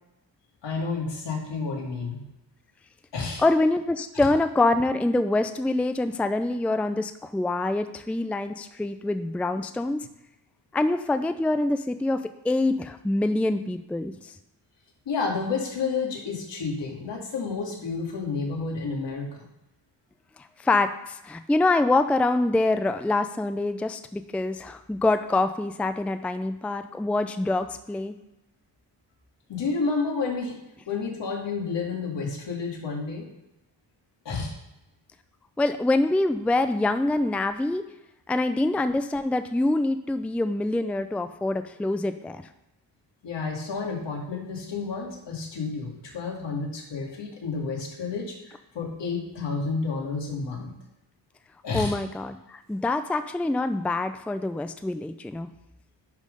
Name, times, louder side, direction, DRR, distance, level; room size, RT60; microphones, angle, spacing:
voice 1, 0.6-2.2 3.1-3.4 4.1-4.3 15.1-19.5 29.5-30.6 30.9-33.3 34.2-34.5 43.2-50.7 51.6-52.0, left 4 dB, 75° left, -1 dB, 2.4 m, -30 dB
voice 2, 3.4-10.1 10.7-14.3 20.6-28.2 35.6-37.8 38.3-42.4 51.7-55.5, left 2 dB, 5° left, 10 dB, 0.4 m, -25 dB
10.5 x 3.7 x 5.2 m, 0.93 s
cardioid pair, 65°, 44 cm